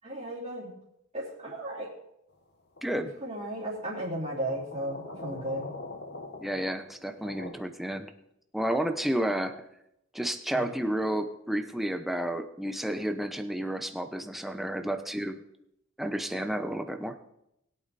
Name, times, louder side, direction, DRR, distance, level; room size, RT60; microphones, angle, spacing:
voice 1, 0.0-0.7 1.1-1.9 3.2-5.7 10.5-10.7, right 1 dB, 30° right, -10 dB, 3.1 m, -35 dB
sound 1, 2.8-3.1 4.4-7.5, left 2 dB, 50° left, 1.2 m, -43 dB
voice 2, 2.8-3.1 6.4-8.1 8.5-9.6 10.1-15.4 16.0-17.2, right 1 dB, ahead, 6 dB, 0.8 m, -31 dB
20.5 x 8.6 x 4.2 m, 0.82 s
head